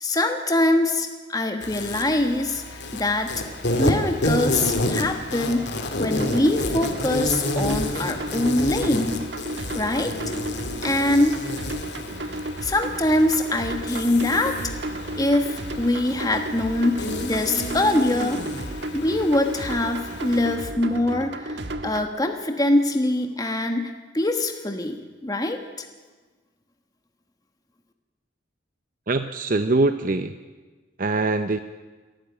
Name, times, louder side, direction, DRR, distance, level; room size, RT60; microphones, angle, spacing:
voice 1, 0.0-2.6 2.9-3.3 3.8-5.7 6.0-9.2 9.7-10.1 10.8-11.3 12.6-14.5 15.2-18.4 18.9-25.9, left 1 dB, 20° left, 5 dB, 1.4 m, -23 dB
Insect, 1.6-20.6, left 1 dB, 60° left, 2.5 m, -30 dB
sound 1, 6.1-22.1, right 1 dB, 60° right, 1.5 m, -33 dB
voice 2, 29.1-30.3 31.0-31.6, right 2 dB, 45° right, 9 dB, 0.7 m, -23 dB
28.5 x 12.0 x 9.1 m, 1.3 s
head